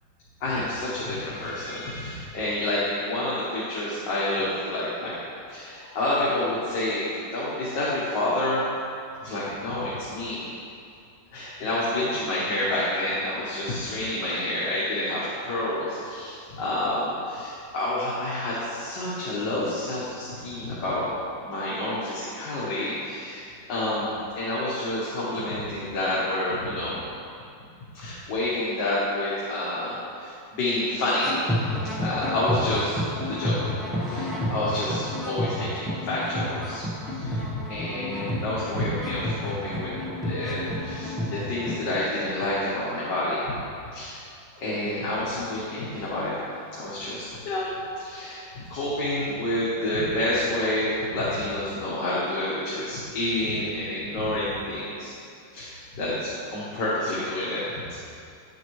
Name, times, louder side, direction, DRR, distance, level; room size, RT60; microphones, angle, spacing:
voice 1, 0.4-5.2 5.5-8.6 9.2-10.5 11.3-21.1 21.4-27.1 27.9-31.4 32.0-33.0 33.3-33.7 34.1-36.8 37.1-39.9 40.2-43.5 43.9-44.2 44.6-46.4 46.8-47.7 48.0-55.1 55.5-58.0, left 1 dB, 70° left, -8 dB, 1.8 m, -28 dB
sound 1, 31.2-41.8, left 1 dB, ahead, 0.7 m, -30 dB
9.1 x 8.0 x 3.1 m, 2.5 s
omnidirectional pair, 2.1 m